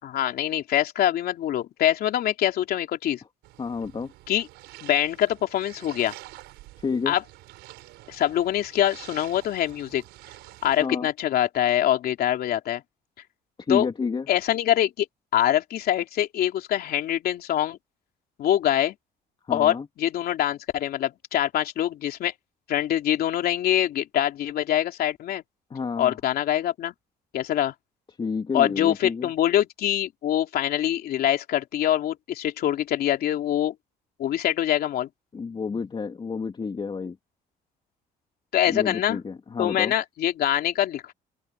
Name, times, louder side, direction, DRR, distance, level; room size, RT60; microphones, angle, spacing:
voice 1, 0.0-3.2 4.3-4.5 4.8-6.1 7.1-7.2 8.1-10.0 10.6-12.8 13.7-13.9 14.3-15.1 15.3-17.8 18.4-18.9 19.5-22.3 22.7-25.4 26.0-26.9 27.3-27.7 28.5-33.7 34.2-35.1 38.5-39.2 39.6-41.1, left 11 dB, 65° left, 3.2 m, -24 dB
sound 1, 3.4-10.8, right 18 dB, 90° right, 5.5 m, -47 dB
voice 2, 3.6-4.1 6.8-7.1 10.8-11.1 13.7-14.3 19.5-19.9 25.7-26.2 28.2-29.3 35.3-37.2 38.7-39.9, left 5 dB, 30° left, 2.8 m, -30 dB
cardioid pair, 110°, 17 cm